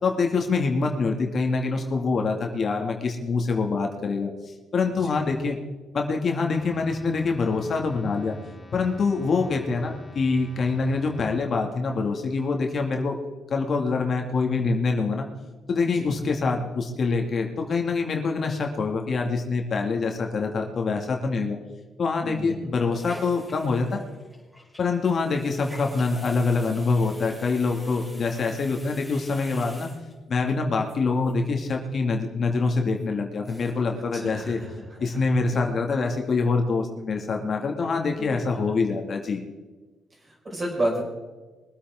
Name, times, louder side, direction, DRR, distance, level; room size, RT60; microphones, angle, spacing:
voice 1, 0.0-4.3 4.7-5.6 5.9-8.3 8.7-13.2 13.5-15.3 15.7-21.6 22.0-24.0 24.8-29.9 30.3-34.6 35.0-39.4, left 4 dB, 50° left, 2 dB, 2.1 m, -25 dB
voice 2, 4.9-5.2 15.9-16.1 22.2-22.7 34.1-35.6 38.2-38.7 40.2-41.0, right 1 dB, 30° right, -1 dB, 5.1 m, -32 dB
sound 1, 6.5-12.9, left 2 dB, 30° left, 3.3 m, -48 dB
sound 2, 22.9-30.5 30.9-31.0 31.2-31.3 31.6-32.0 32.3-32.4 33.0-33.1 33.3-33.9 34.2-34.3 34.6-35.1 35.4-35.6, left 1 dB, ahead, 4.3 m, -47 dB
23.0 x 8.7 x 3.7 m, 1.2 s
cardioid pair, 90°, 0 cm